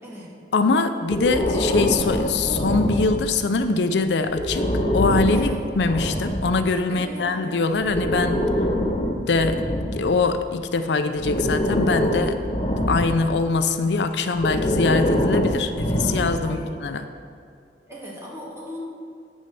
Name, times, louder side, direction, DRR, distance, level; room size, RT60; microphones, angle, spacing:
voice 1, 0.0-0.3 5.3-5.6 6.9-7.5 14.2-14.3 16.4-16.7 17.9-18.9, equal, 15° right, -6 dB, 2.3 m, -37 dB
voice 2, 0.5-5.5 5.8-8.5 9.2-12.4 12.9-17.0, left 3 dB, 75° left, 9 dB, 0.5 m, -23 dB
Breathing, 1.1-3.5 4.3-6.6 7.7-10.6 11.2-13.4 14.3-16.6, equal, 30° left, 0.8 m, -24 dB
9.1 x 6.2 x 6.8 m, 2.4 s
head